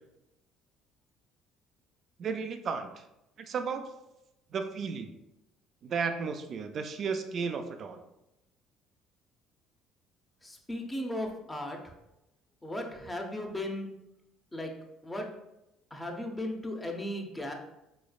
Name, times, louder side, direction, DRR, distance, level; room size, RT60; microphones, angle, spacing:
voice 1, 2.2-3.0 3.5-3.8 4.5-5.1 5.8-8.0, right 5 dB, 55° right, 6 dB, 0.3 m, -33 dB
voice 2, 10.4-11.9 12.6-13.9 14.5-14.7 15.0-15.3 15.9-17.5, left 1 dB, 15° left, 2 dB, 0.7 m, -36 dB
3.9 x 3.1 x 2.3 m, 0.90 s
supercardioid pair, 70°, 0 cm